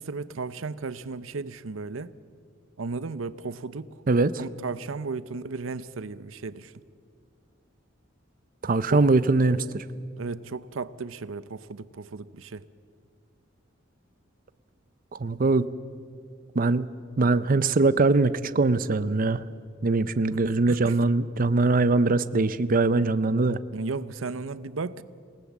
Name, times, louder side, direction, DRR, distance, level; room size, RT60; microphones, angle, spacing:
voice 1, 0.0-2.1 2.8-4.0 4.4-6.7 8.9-9.0 10.2-12.7 20.3-21.0 23.7-25.0, right 4 dB, 90° right, 16 dB, 0.7 m, -35 dB
voice 2, 8.6-9.8 15.1-15.7 16.6-16.9 17.2-19.4 19.8-23.6, right 3 dB, 45° right, 14 dB, 0.6 m, -22 dB
28.0 x 18.5 x 7.3 m, 2.1 s
head